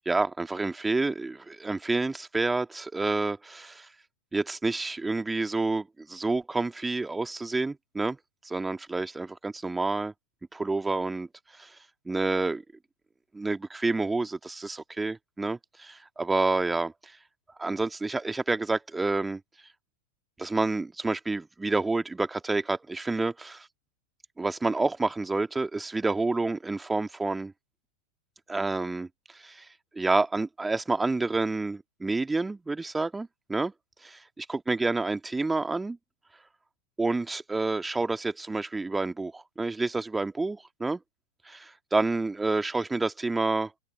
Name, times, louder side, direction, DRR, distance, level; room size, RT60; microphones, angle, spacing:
voice 1, 0.0-3.9 4.3-8.2 8.4-10.1 10.5-11.3 11.6-11.8 12.1-12.6 13.3-17.1 17.6-19.4 20.4-23.7 24.4-27.5 28.5-29.1 29.3-29.7 29.9-33.7 34.0-36.0 37.0-41.0 41.5-43.8, right 3 dB, 10° right, 2.2 m, -29 dB
open air
figure-of-eight pair, 90°, 0 cm